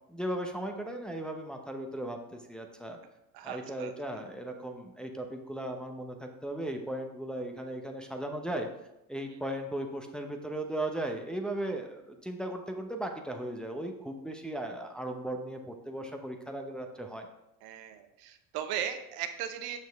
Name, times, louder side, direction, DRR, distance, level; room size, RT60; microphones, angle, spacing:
voice 1, 0.1-3.0 3.4-8.7 9.1-17.3, right 1 dB, ahead, 3 dB, 0.8 m, -37 dB
voice 2, 3.3-3.9 17.6-19.8, right 9 dB, 65° right, 7 dB, 0.9 m, -37 dB
6.6 x 6.1 x 3.5 m, 0.87 s
supercardioid pair, 90°, 39 cm